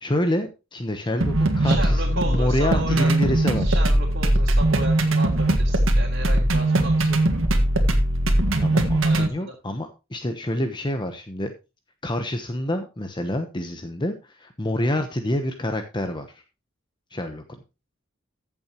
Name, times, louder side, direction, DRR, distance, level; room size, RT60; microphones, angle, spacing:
voice 1, 0.0-3.8 8.6-11.5 12.0-16.3 17.1-17.4, left 1 dB, 25° left, 6 dB, 1.0 m, -27 dB
sound 1, 1.2-9.3, right 1 dB, 85° right, 1.7 m, -20 dB
voice 2, 1.6-7.4 9.0-9.5, right 2 dB, 50° right, -5 dB, 3.1 m, -34 dB
15.0 x 7.1 x 3.0 m, 0.28 s
head